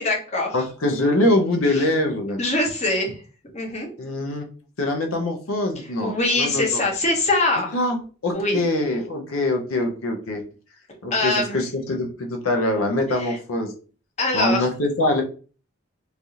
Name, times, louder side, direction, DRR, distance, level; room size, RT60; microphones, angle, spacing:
voice 1, 0.0-0.6 1.8-1.9 2.4-3.2 3.5-3.9 6.0-7.7 8.3-8.6 11.1-11.6 13.2-13.4 14.2-14.7, left 2 dB, 30° left, 0 dB, 0.7 m, -23 dB
voice 2, 0.5-2.4 4.0-4.5 4.8-6.8 7.7-10.4 11.0-13.7 14.3-15.2, left 1 dB, 85° left, 3 dB, 0.6 m, -23 dB
3.2 x 2.4 x 2.7 m, 0.38 s
head